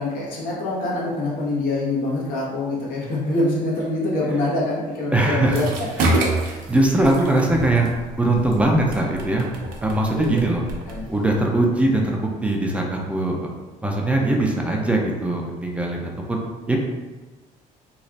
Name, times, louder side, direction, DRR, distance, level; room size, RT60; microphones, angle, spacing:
voice 1, 0.0-5.6 10.1-10.5 10.9-11.1, left 2 dB, 90° left, -5 dB, 1.2 m, -25 dB
voice 2, 5.1-5.7 6.0-6.1 6.7-7.9 8.2-9.5 9.8-10.6 11.1-13.5 13.8-16.8, right 2 dB, 10° right, -1 dB, 0.4 m, -21 dB
sound 1, 5.4-11.7, right 2 dB, 90° right, 0.7 m, -28 dB
3.2 x 2.4 x 3.9 m, 1.2 s
cardioid pair, 150°, 14 cm